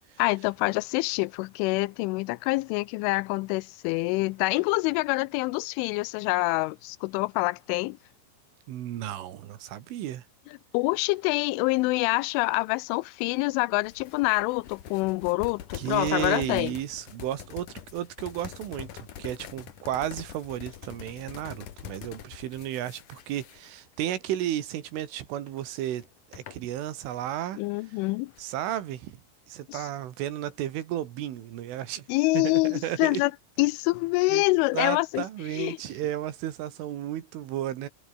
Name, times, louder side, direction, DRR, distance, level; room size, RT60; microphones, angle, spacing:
voice 1, 0.2-8.0 10.7-16.7 27.6-28.3 29.7-29.8 32.1-33.3 33.6-35.3 35.5-35.8, left 23 dB, 80° left, 3.1 m, -26 dB
voice 2, 8.7-10.2 15.7-27.6 28.4-29.1 29.5-32.0 32.3-33.2 34.3-34.4 34.7-37.9, right 12 dB, 80° right, 4.4 m, -33 dB
sound 1, 13.8-24.1 24.6-24.8 25.5-27.3 27.6-28.7, left 10 dB, 60° left, 2.4 m, -44 dB
omnidirectional pair, 5.7 m